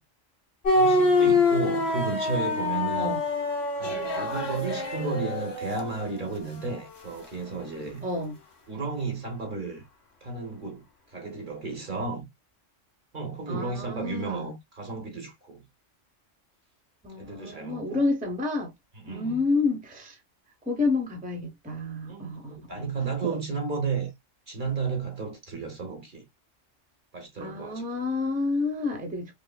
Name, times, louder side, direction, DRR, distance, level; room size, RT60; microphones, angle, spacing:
sound 1, 0.7-6.3, left 2 dB, 55° left, 2.1 m, -25 dB
voice 1, 0.7-3.2 3.8-8.1 8.7-9.8 10.2-12.3 13.1-15.6 17.2-18.0 19.0-19.4 22.1-24.1 24.5-26.2 27.1-27.8, right 4 dB, 45° right, 1.1 m, -33 dB
sound 2, 3.8-6.6 6.9-7.6, left 3 dB, 25° left, 0.6 m, -38 dB
voice 2, 8.0-8.4 13.5-14.5 17.0-18.7 19.1-20.2 20.7-22.9 23.2-23.4 27.4-29.3, left 3 dB, 10° right, 0.8 m, -29 dB
5.4 x 2.0 x 2.3 m
omnidirectional pair, 1.3 m